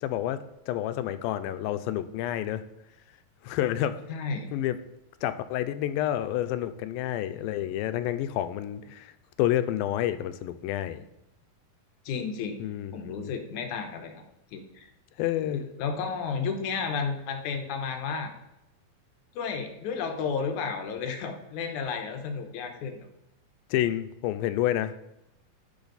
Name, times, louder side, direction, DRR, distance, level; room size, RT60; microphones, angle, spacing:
voice 1, 0.0-2.6 3.4-4.0 4.5-4.8 5.2-9.1 9.4-11.0 12.6-13.3 15.2-15.7 23.7-24.9, left 12 dB, 85° left, 11 dB, 2.3 m, -29 dB
voice 2, 4.1-4.5 12.1-12.5 12.9-14.1 14.5-14.9 15.5-18.3 19.3-23.1, left 5 dB, 70° left, 5 dB, 2.1 m, -32 dB
10.5 x 7.4 x 4.0 m, 0.85 s
omnidirectional pair, 4.2 m